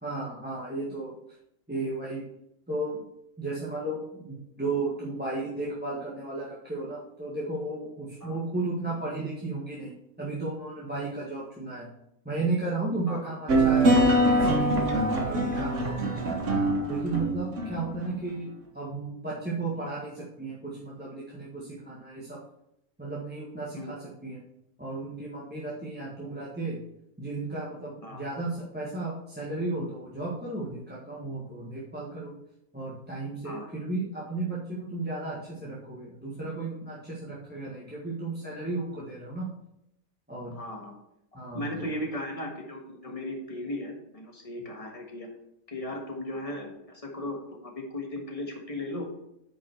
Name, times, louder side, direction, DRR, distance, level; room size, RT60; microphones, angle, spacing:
voice 1, 0.0-1.1 1.7-2.2 2.7-3.0 3.4-9.9 10.2-11.9 12.2-16.6 16.9-18.5 18.7-22.4 23.0-24.4 24.8-26.8 27.2-32.3 32.7-39.5 40.3-40.6 41.3-41.9, right 2 dB, 5° right, -7 dB, 1.4 m, -34 dB
sound 1, 13.5-18.0, right 1 dB, 60° right, 1.4 m, -24 dB
voice 2, 40.5-40.9 41.5-45.3 45.7-49.1, left 1 dB, 25° left, 1 dB, 1.5 m, -36 dB
8.5 x 5.4 x 4.5 m, 0.80 s
omnidirectional pair, 1.5 m